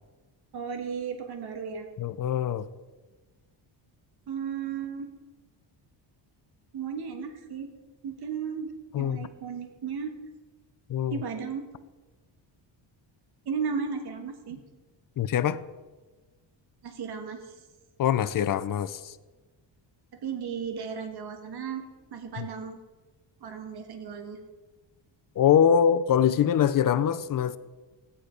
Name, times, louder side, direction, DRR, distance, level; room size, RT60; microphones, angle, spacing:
voice 1, 0.5-1.9 4.3-5.1 6.7-7.7 8.0-8.7 9.0-10.1 11.1-11.7 13.4-14.6 16.8-17.5 20.2-21.8 22.1-22.8 23.4-24.4, right 6 dB, 55° right, 6 dB, 1.5 m, -34 dB
voice 2, 2.0-2.7 8.9-9.3 10.9-11.2 15.2-15.6 18.0-19.2 22.4-22.5 25.4-27.6, left 9 dB, 45° left, 14 dB, 0.6 m, -23 dB
14.0 x 9.9 x 5.1 m, 1.3 s
cardioid pair, 155°, 47 cm